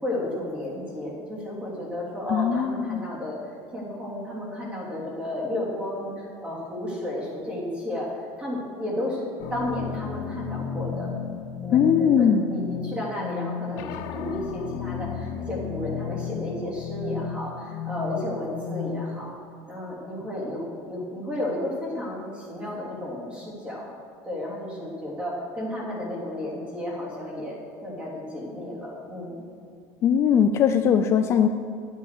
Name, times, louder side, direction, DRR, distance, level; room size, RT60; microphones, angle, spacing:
voice 1, 0.0-3.4 3.7-8.1 8.4-9.2 9.5-11.1 11.6-19.3 19.7-23.9 24.2-29.4, left 1 dB, 15° right, -5 dB, 3.0 m, -33 dB
voice 2, 2.3-3.1 11.7-12.4 30.0-31.5, left 8 dB, 35° left, 7 dB, 0.4 m, -20 dB
sound 1, 9.4-19.4, left 7 dB, 85° left, 0.7 m, -33 dB
11.0 x 8.2 x 6.8 m, 2.3 s
cardioid pair, 165°, 8 cm